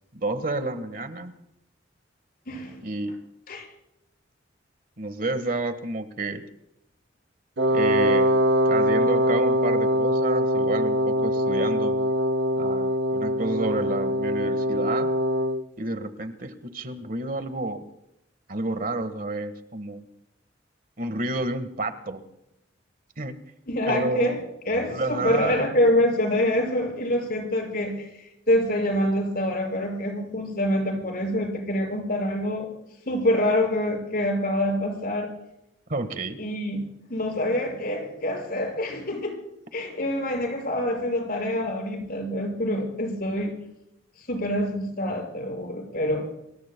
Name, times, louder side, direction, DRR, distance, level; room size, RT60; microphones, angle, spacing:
voice 1, 0.1-1.3 2.8-3.1 5.0-6.4 7.7-8.3 8.6-11.9 12.6-15.1 15.8-17.8 18.5-20.0 21.0-22.2 23.2-23.3 23.9-24.4 24.9-25.8 35.9-36.4, right 2 dB, 50° right, 9 dB, 1.5 m, -30 dB
Wind instrument woodwind instrument, 7.6-15.6, equal, 65° right, 1.0 m, -23 dB
voice 2, 23.7-24.4 24.7-28.1 28.5-32.7 33.1-35.3 36.4-36.8 37.1-39.4 39.7-43.5 44.3-46.3, left 1 dB, 50° left, 2 dB, 6.2 m, -26 dB
29.0 x 21.0 x 2.2 m, 0.84 s
head